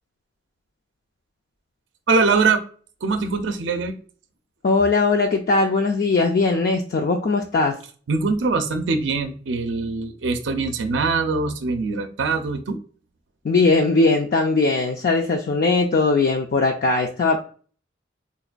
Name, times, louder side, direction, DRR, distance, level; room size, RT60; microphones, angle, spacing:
voice 1, 2.1-2.6 3.0-3.9 8.1-12.8, right 4 dB, 70° right, 7 dB, 0.5 m, -22 dB
voice 2, 4.6-7.8 13.4-17.4, left 3 dB, 50° left, 2 dB, 0.4 m, -19 dB
4.0 x 2.2 x 2.4 m, 0.42 s
head